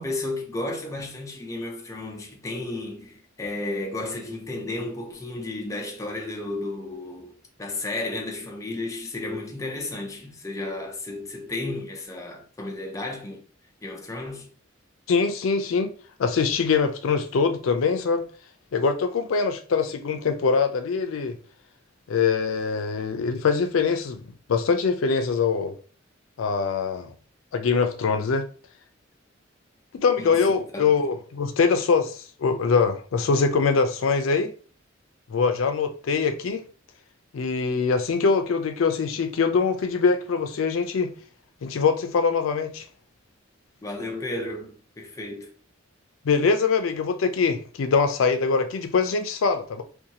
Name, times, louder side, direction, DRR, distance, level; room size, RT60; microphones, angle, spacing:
voice 1, 0.0-13.4 13.8-14.5 30.2-31.0 43.8-45.5, left 2 dB, 15° left, 0.5 m, -33 dB
voice 2, 15.1-15.9 16.2-18.2 18.7-21.4 22.1-24.2 24.5-25.8 26.4-27.1 27.5-28.5 29.9-34.5 35.3-36.6 37.3-41.1 41.6-42.9 46.2-49.8, left 5 dB, 90° left, 0.4 m, -23 dB
2.6 x 2.2 x 2.8 m
head